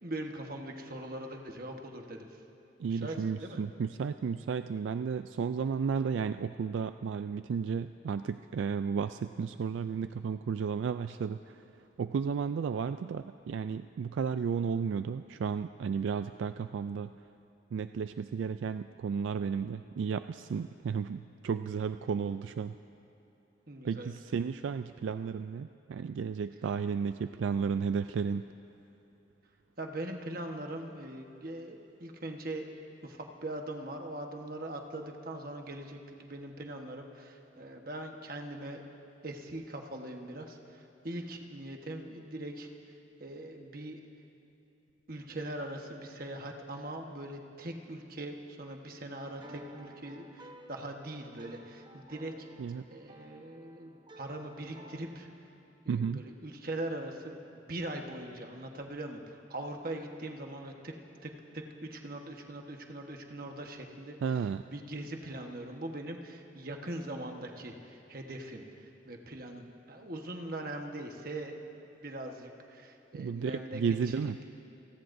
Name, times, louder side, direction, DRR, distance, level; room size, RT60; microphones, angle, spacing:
voice 1, 0.0-2.4 2.8-3.6 23.7-24.1 29.8-32.7 33.0-38.8 39.2-42.7 43.2-44.0 45.1-52.3 52.9-55.3 55.8-57.4 57.7-60.9 61.2-64.2 64.7-71.6 72.0-74.3, right 1 dB, 50° right, 3 dB, 1.2 m, -41 dB
voice 2, 2.8-11.6 12.0-17.1 17.7-22.8 23.8-28.5 52.6-52.8 55.9-56.2 64.2-64.6 73.1-74.4, right 6 dB, 80° right, 10 dB, 0.3 m, -33 dB
sound 1, 49.1-55.2, right 1 dB, 25° right, 0.9 m, -54 dB
28.5 x 19.0 x 2.7 m, 3.0 s
head